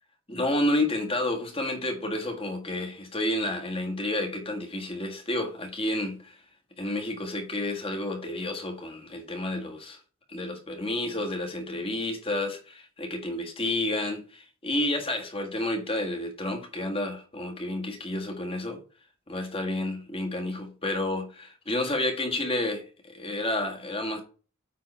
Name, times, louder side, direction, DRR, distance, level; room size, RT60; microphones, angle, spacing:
voice 1, 0.3-6.4 6.8-10.0 10.3-18.8 19.3-24.2, left 1 dB, 25° left, 1.7 m, -30 dB
9.3 x 3.8 x 5.6 m
head